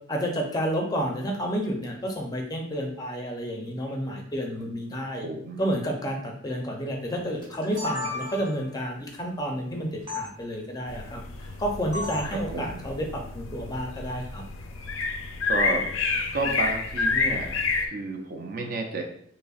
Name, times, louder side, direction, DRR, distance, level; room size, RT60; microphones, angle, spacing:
voice 1, 0.1-5.2 5.6-14.4, equal, 20° left, 1 dB, 0.5 m, -30 dB
voice 2, 5.0-5.6 12.3-12.8 15.5-19.0, right 3 dB, 45° right, 2 dB, 0.5 m, -32 dB
sound 1, 7.4-8.7 10.1-10.2 11.9-12.3, left 3 dB, 25° right, 1.0 m, -34 dB
sound 2, 10.9-17.9, left 4 dB, 90° left, 0.4 m, -29 dB
5.2 x 2.0 x 2.4 m, 0.66 s
head